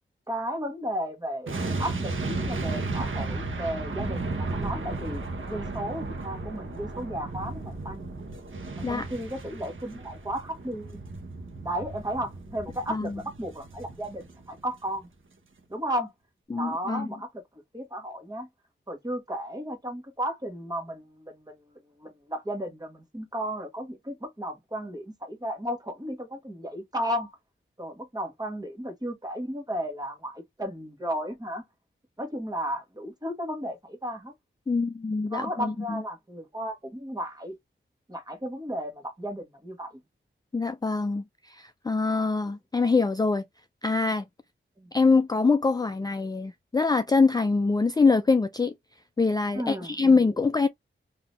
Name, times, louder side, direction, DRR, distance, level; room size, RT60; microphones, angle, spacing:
voice 1, 0.3-5.2 5.5-8.1 8.9-11.0 11.6-15.1 15.7-16.1 16.6-17.4 17.7-18.5 18.9-21.5 22.0-27.3 27.8-31.6 32.2-34.3 35.3-37.6 38.1-40.0 44.8-44.9 49.5-50.2, equal, 20° right, 1.5 m, -34 dB
sound 1, 1.5-14.6 14.9-15.1, right 3 dB, 70° right, 1.1 m, -34 dB
voice 2, 16.5-17.1 34.7-36.0 40.5-43.4 43.8-44.2 44.9-48.7 49.2-50.7, left 4 dB, 20° left, 0.3 m, -24 dB
3.9 x 2.8 x 3.2 m
wide cardioid pair, 95°, 21 cm